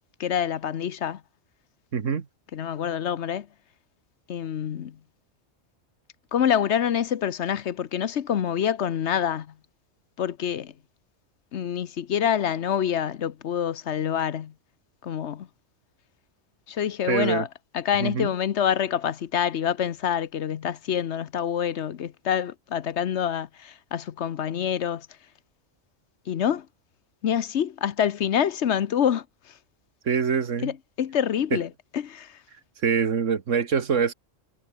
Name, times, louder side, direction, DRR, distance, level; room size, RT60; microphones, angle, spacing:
voice 1, 0.2-1.2 2.5-3.5 4.3-5.0 6.3-9.5 10.2-10.7 11.5-14.5 15.0-15.5 16.7-17.5 17.7-25.1 26.3-26.7 27.2-29.6 30.6-32.4, left 9 dB, 70° left, 1.1 m, -26 dB
voice 2, 1.9-2.3 17.1-17.5 18.0-18.3 30.1-30.7 31.5-31.6 32.8-34.1, right 6 dB, 85° right, 1.9 m, -24 dB
omnidirectional pair, 1.3 m